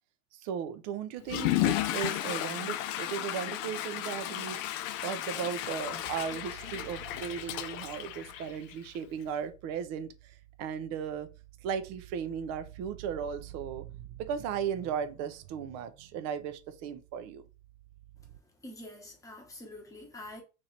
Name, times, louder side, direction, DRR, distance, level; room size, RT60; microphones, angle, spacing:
voice 1, 0.3-4.6 5.0-11.3 11.6-17.4, right 8 dB, 35° right, 0.4 m, -36 dB
Water / Toilet flush, 1.2-9.0, left 14 dB, 50° left, 0.5 m, -34 dB
sound 1, 5.5-18.4, right 14 dB, 75° right, 0.7 m, -52 dB
voice 2, 18.6-20.4, left 1 dB, 5° left, 1.0 m, -46 dB
3.2 x 2.9 x 3.9 m
supercardioid pair, 120°, 49 cm